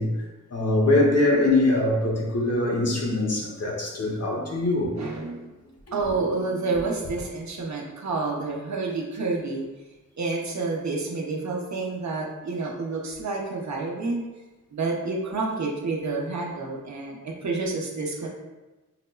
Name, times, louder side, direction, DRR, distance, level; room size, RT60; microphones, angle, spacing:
voice 1, 0.0-4.9, left 2 dB, 50° left, -2 dB, 0.8 m, -23 dB
voice 2, 5.0-5.5 5.9-9.6 10.2-14.2 14.7-18.3, right 3 dB, 55° right, -3 dB, 0.8 m, -29 dB
5.7 x 2.1 x 2.2 m, 1.1 s
wide cardioid pair, 75°, 34 cm